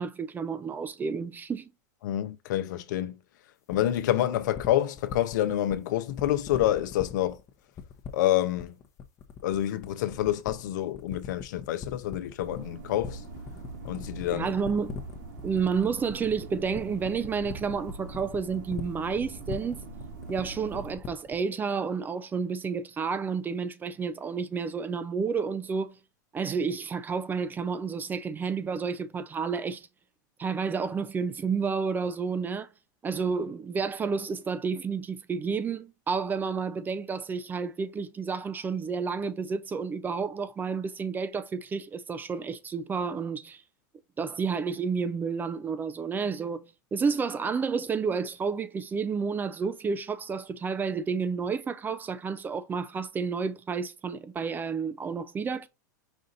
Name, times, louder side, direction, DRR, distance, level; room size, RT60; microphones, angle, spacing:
voice 1, 0.0-1.7 14.3-15.0 15.4-19.9 20.3-25.9 26.3-29.9 30.4-32.7 33.0-43.6 44.2-55.7, right 5 dB, 20° right, 0.4 m, -30 dB
voice 2, 2.0-3.2 3.7-7.4 8.1-8.8 9.4-13.2 13.8-14.5, left 13 dB, 70° left, 0.7 m, -27 dB
sound 1, 3.7-21.5, left 6 dB, 30° left, 0.8 m, -41 dB
sound 2, 12.4-21.0, right 3 dB, 65° right, 1.5 m, -43 dB
5.3 x 2.5 x 4.0 m
hypercardioid pair, 120°, 10 cm